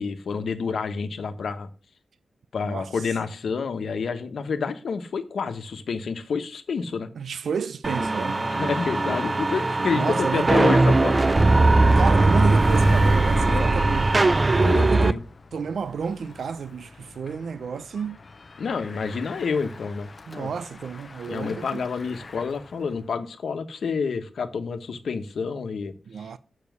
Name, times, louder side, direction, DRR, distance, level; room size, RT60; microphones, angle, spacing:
voice 1, 0.0-1.7 2.5-7.1 8.4-11.2 13.3-14.0 14.6-15.2 18.6-20.1 20.3-20.5 21.3-26.3, left 5 dB, 75° left, 1.2 m, -29 dB
voice 2, 7.2-8.4 9.9-10.6 11.8-14.2 14.5-15.2 15.5-18.2 20.3-21.8 26.1-26.4, right 6 dB, 75° right, 0.6 m, -31 dB
sound 1, 7.8-15.1, right 2 dB, 25° right, 0.4 m, -19 dB
Bicycle, 9.0-23.2, left 3 dB, 35° left, 0.6 m, -41 dB
7.2 x 6.7 x 8.0 m
wide cardioid pair, 140°, 0 cm